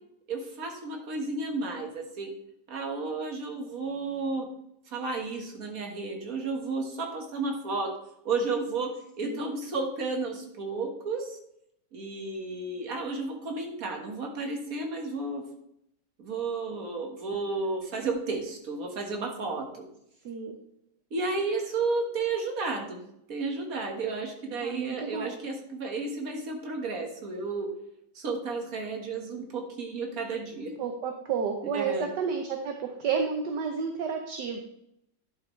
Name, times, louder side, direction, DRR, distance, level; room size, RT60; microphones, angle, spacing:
voice 1, 0.3-2.3 2.7-4.5 4.9-7.9 8.3-8.9 9.2-11.4 11.9-15.4 16.2-19.8 21.1-23.0 23.3-27.7 28.2-30.7 31.7-32.1, right 3 dB, 50° right, 2 dB, 1.9 m, -32 dB
voice 2, 20.2-20.6 24.6-25.4 30.8-34.6, right 6 dB, 70° right, 3 dB, 1.4 m, -31 dB
11.0 x 6.8 x 3.2 m, 0.75 s
omnidirectional pair, 2.0 m